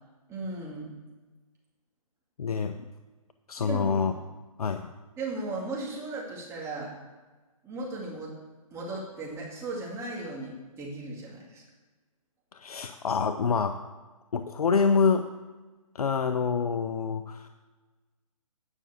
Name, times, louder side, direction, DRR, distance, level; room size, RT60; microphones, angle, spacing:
voice 1, 0.3-1.0 3.6-4.0 5.2-6.9 7.6-8.4 8.7-11.6, right 2 dB, 15° right, -3 dB, 2.3 m, -36 dB
voice 2, 2.4-2.8 3.5-4.1 4.6-4.9 12.5-13.8 14.3-15.3 15.9-17.5, left 5 dB, 80° left, 8 dB, 0.7 m, -26 dB
9.8 x 6.1 x 7.0 m, 1.2 s
hypercardioid pair, 145°, 19 cm